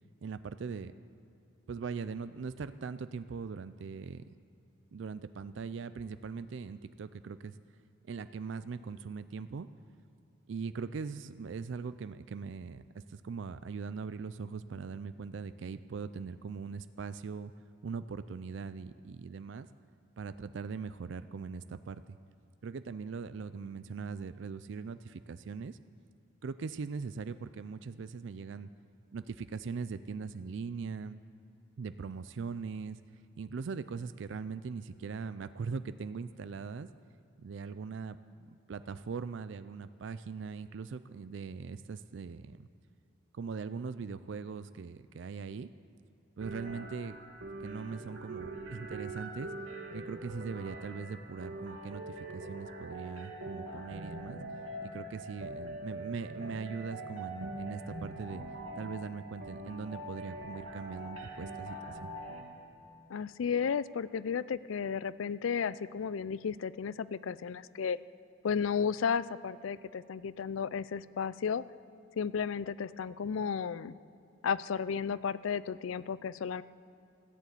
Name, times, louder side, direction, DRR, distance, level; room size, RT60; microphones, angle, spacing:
voice 1, 0.2-0.9 1.7-4.2 4.9-7.5 8.1-9.7 10.5-17.5 17.8-19.7 20.2-22.2 22.6-25.8 26.4-28.7 29.1-31.2 31.8-33.0 33.4-36.9 37.4-38.2 38.5-42.7 43.3-45.7 46.4-47.2 47.6-49.5 49.9-54.4 54.8-58.4 58.8-62.1, right 5 dB, 65° right, 13 dB, 0.4 m, -40 dB
sound 1, 46.4-62.4, right 1 dB, 90° right, 2.2 m, -43 dB
voice 2, 63.1-68.0 68.4-71.6 72.2-73.9 74.4-76.6, left 6 dB, 80° left, 17 dB, 0.4 m, -33 dB
15.5 x 10.5 x 8.3 m, 2.7 s
head